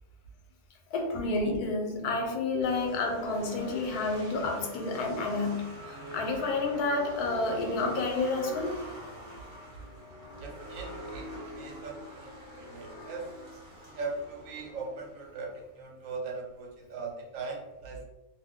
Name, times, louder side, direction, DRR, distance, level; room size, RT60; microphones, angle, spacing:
voice 1, 0.9-8.8, left 3 dB, 90° left, 2 dB, 1.1 m, -30 dB
sound 1, 2.6-15.7, equal, 40° right, 0.8 m, -44 dB
voice 2, 10.4-13.3 13.9-18.0, right 3 dB, 70° right, 1 dB, 0.9 m, -40 dB
2.5 x 2.3 x 3.5 m, 1.0 s
omnidirectional pair, 1.6 m